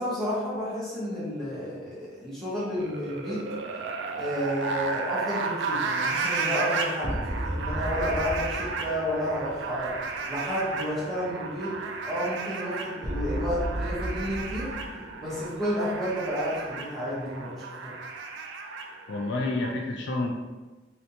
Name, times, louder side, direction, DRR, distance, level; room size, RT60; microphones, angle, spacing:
voice 1, 0.0-3.4 4.1-9.9 10.3-11.7 12.1-14.7 15.2-17.9, equal, ahead, -11 dB, 1.2 m, -31 dB
sound 1, 2.7-19.7, right 4 dB, 65° right, 0.3 m, -34 dB
sound 2, 6.7-16.9, equal, 15° right, 0.6 m, -37 dB
voice 2, 19.1-20.3, left 2 dB, 60° left, 1 dB, 0.4 m, -29 dB
3.1 x 2.8 x 2.8 m, 1.2 s
head